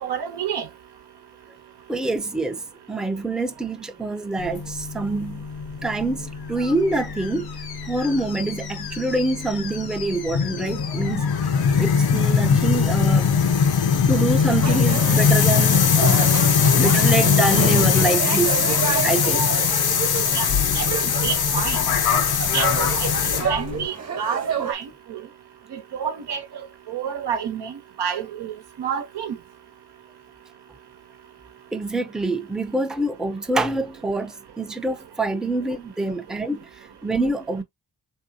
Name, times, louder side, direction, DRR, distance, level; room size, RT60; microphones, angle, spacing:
voice 1, 0.0-0.7 19.3-19.7 20.3-20.5 20.7-21.8 22.5-22.7 23.0-25.2 25.7-26.4 26.9-29.4, right 7 dB, 85° right, 0.9 m, -29 dB
voice 2, 1.9-2.6 2.9-5.5 5.8-7.5 7.9-11.5 11.8-13.3 14.1-16.3 16.8-18.6 19.0-19.4 19.7-19.8 31.7-36.7 37.0-37.6, right 2 dB, ahead, 0.5 m, -25 dB
sound 1, 4.4-23.9, left 6 dB, 65° left, 0.7 m, -21 dB
sound 2, 14.6-24.7, right 6 dB, 40° right, 1.0 m, -30 dB
3.1 x 2.8 x 2.7 m
cardioid pair, 55°, 40 cm